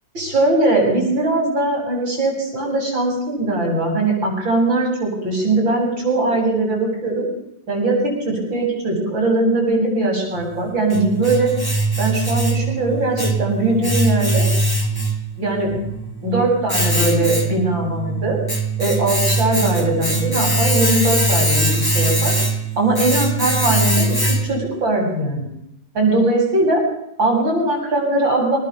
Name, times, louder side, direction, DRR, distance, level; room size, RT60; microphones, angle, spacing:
voice 1, 0.1-7.3 7.7-11.5 12.0-14.5 15.4-15.7 16.2-18.4 18.8-22.3 22.8-25.5 26.0-26.8 27.2-28.6, right 2 dB, 80° right, 1 dB, 8.9 m, -20 dB
Domestic sounds home sounds, 10.4-24.7, right 2 dB, 10° left, 1.8 m, -21 dB
26.5 x 20.5 x 7.2 m, 0.81 s
omnidirectional pair, 2.1 m